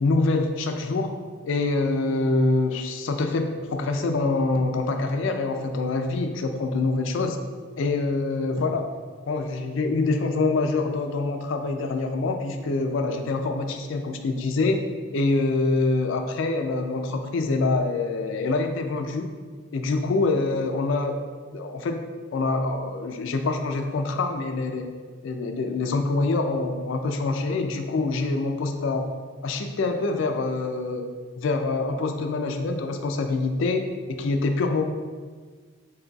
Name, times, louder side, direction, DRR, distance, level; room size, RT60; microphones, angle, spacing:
voice 1, 0.0-1.2 1.4-7.4 7.8-8.9 9.3-14.8 15.1-19.3 19.7-21.2 21.5-22.0 22.3-24.9 25.2-29.1 29.4-31.1 31.4-33.9 34.2-34.8, left 3 dB, 60° left, 5 dB, 0.3 m, -25 dB
5.2 x 3.9 x 2.3 m, 1.5 s
head